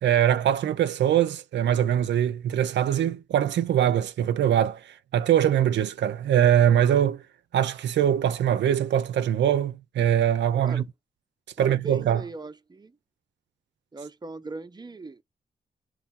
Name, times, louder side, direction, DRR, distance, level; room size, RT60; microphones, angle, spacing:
voice 1, 0.0-7.2 7.5-10.8 11.6-12.2, right 10 dB, 85° right, 0.5 m, -22 dB
voice 2, 11.6-12.9 13.9-15.2, right 3 dB, 25° right, 0.7 m, -40 dB
4.4 x 3.1 x 3.6 m
cardioid pair, 50°, 18 cm